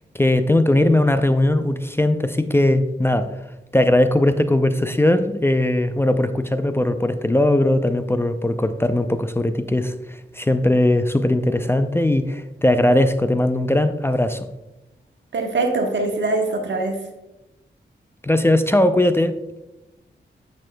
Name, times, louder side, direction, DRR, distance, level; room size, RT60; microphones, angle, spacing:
voice 1, 0.1-3.3 3.7-14.5 18.2-19.4, left 1 dB, 15° left, 10 dB, 0.5 m, -19 dB
voice 2, 15.3-17.0, right 3 dB, 75° right, 3 dB, 1.2 m, -22 dB
9.7 x 6.4 x 2.2 m, 0.97 s
cardioid pair, 50°, 19 cm